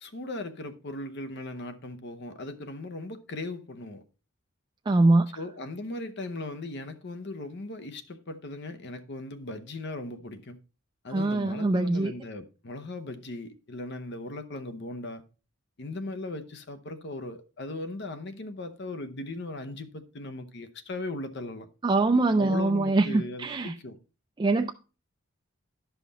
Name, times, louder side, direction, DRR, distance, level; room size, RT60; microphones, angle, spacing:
voice 1, 0.0-4.0 5.4-10.6 11.0-15.2 15.8-21.7 22.4-24.0, left 2 dB, 55° left, 0.8 m, -38 dB
voice 2, 4.9-5.3 11.1-12.1 21.8-23.7 24.4-24.7, right 2 dB, 20° right, 0.3 m, -23 dB
11.5 x 5.7 x 4.0 m
head